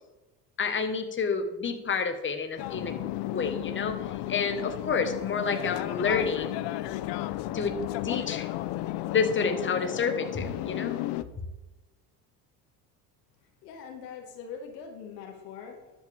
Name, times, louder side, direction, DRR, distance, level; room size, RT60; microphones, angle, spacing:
voice 1, 0.6-2.9 3.3-6.6 7.5-7.8 8.0-8.5 9.0-11.0, left 5 dB, 25° left, 6 dB, 1.3 m, -29 dB
sound 1, 2.6-11.2, left 15 dB, 60° left, 0.7 m, -33 dB
voice 2, 13.6-15.9, left 6 dB, 90° left, 3 dB, 1.9 m, -42 dB
13.0 x 8.2 x 3.5 m, 1.1 s
supercardioid pair, 80°, 47 cm